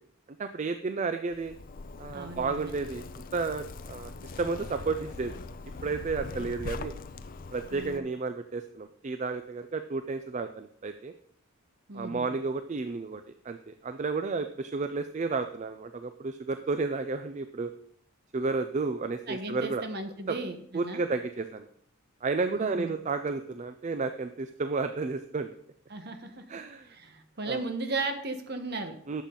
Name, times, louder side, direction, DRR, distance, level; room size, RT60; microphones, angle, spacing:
voice 1, 0.4-1.6 2.0-5.4 5.8-6.9 7.5-11.1 11.9-17.7 18.3-19.8 20.3-20.4 20.7-21.7 22.2-25.5 26.5-26.9 27.5-27.6 29.1-29.2, right 4 dB, 35° right, 9 dB, 0.4 m, -32 dB
Zipper (clothing), 1.3-8.0, left 3 dB, 40° left, 0.4 m, -42 dB
voice 2, 2.1-2.7 7.7-8.1 11.9-12.3 19.3-21.0 22.5-23.0 25.9-26.6 26.8-28.9, right 2 dB, 50° right, 7 dB, 1.1 m, -36 dB
11.0 x 7.4 x 3.8 m, 0.68 s
head